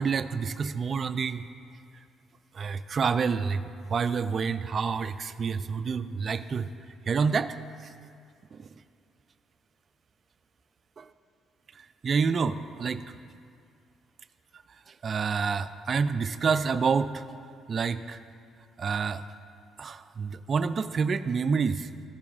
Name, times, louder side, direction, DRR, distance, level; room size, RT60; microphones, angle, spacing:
voice 1, 0.0-1.5 2.5-6.7 7.1-7.9 8.5-8.7 11.0-11.1 11.7-13.2 14.7-17.2 17.7-18.2 18.8-19.2 19.8-22.1, right 5 dB, 45° right, 12 dB, 0.3 m, -28 dB
15.0 x 7.0 x 2.4 m, 2.4 s
cardioid pair, 85°, 0 cm